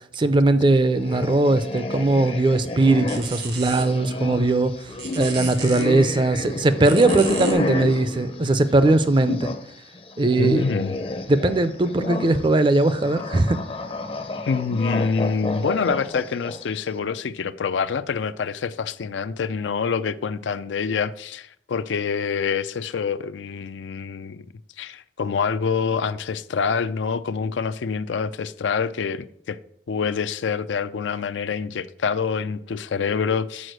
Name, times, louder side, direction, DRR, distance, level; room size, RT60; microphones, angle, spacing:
voice 1, 0.2-4.7 5.2-9.5 10.2-10.6 11.3-13.6, right 2 dB, 25° right, 0.4 m, -19 dB
sound 1, 0.9-9.7 10.0-16.8, left 2 dB, 30° left, 0.6 m, -31 dB
sound 2, 1.9-7.5, right 6 dB, 75° right, 1.5 m, -37 dB
voice 2, 10.4-11.0 14.5-24.5 24.8-29.6 29.9-33.7, left 5 dB, 80° left, 0.4 m, -26 dB
6.3 x 4.8 x 6.3 m
head